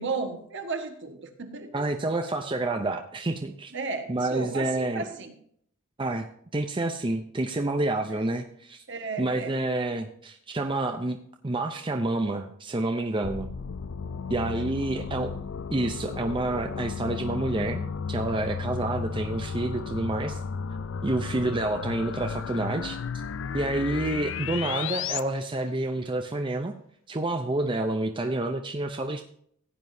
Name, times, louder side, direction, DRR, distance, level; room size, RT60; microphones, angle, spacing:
voice 1, 0.0-1.9 3.7-5.3 8.1-8.2 8.9-9.6 14.4-15.3 18.8-18.9, right 4 dB, 60° right, 5 dB, 1.6 m, -35 dB
voice 2, 1.7-3.7 4.1-5.0 6.0-6.3 6.5-8.8 9.2-11.2 11.4-13.5 14.3-15.3 15.7-20.4 21.0-23.0 23.5-26.7 27.1-29.2, right 2 dB, 25° right, 5 dB, 0.6 m, -28 dB
sound 1, 13.2-25.2, left 6 dB, 65° left, 0.4 m, -34 dB
15.5 x 9.7 x 2.7 m, 0.63 s
head